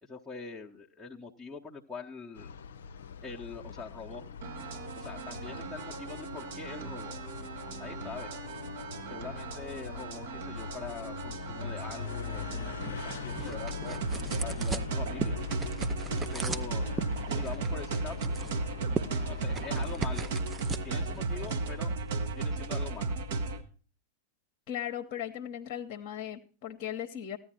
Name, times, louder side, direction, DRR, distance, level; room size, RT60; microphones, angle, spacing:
voice 1, 0.0-2.5 3.2-4.3 5.0-7.2 7.8-8.3 9.1-14.0 14.4-15.4 16.3-16.9 17.3-18.4 19.3-20.3 20.8-21.9 22.3-23.1, left 4 dB, ahead, -5 dB, 1.0 m, -43 dB
sound 1, 2.3-20.3, left 6 dB, 65° left, 0.6 m, -42 dB
sound 2, 4.4-23.6, right 3 dB, 55° right, 1.2 m, -35 dB
sound 3, 12.3-22.5, right 5 dB, 15° right, 0.6 m, -40 dB
voice 2, 24.7-27.4, left 10 dB, 40° left, 7 dB, 1.0 m, -37 dB
14.5 x 10.0 x 4.3 m, 0.39 s
figure-of-eight pair, 90°, 0 cm